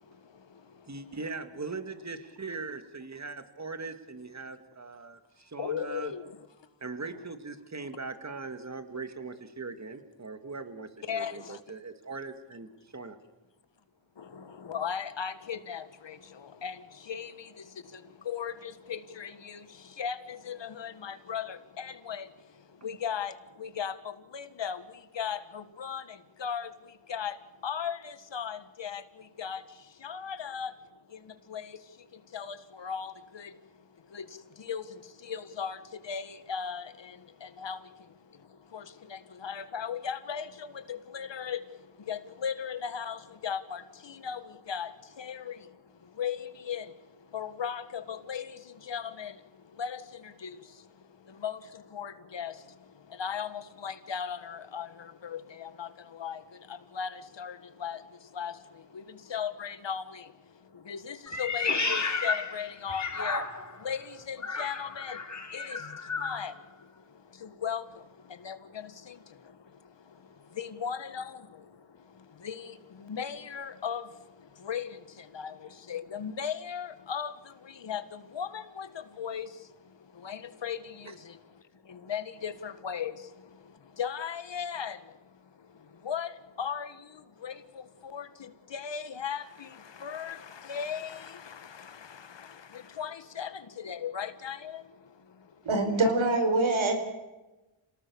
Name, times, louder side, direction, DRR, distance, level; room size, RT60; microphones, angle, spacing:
voice 1, 0.0-1.2 5.6-6.5 11.1-11.6 14.1-95.7, left 7 dB, 70° left, 1.7 m, -38 dB
voice 2, 0.9-6.1 6.8-13.2 81.0-81.1 96.1-96.2, right 4 dB, 35° right, 2.3 m, -40 dB
Meow, 61.3-63.8 64.4-66.4, left 4 dB, 35° left, 3.1 m, -32 dB
voice 3, 95.6-96.9, right 2 dB, 85° right, 4.7 m, -24 dB
27.5 x 18.5 x 7.1 m
cardioid pair, 70°, 46 cm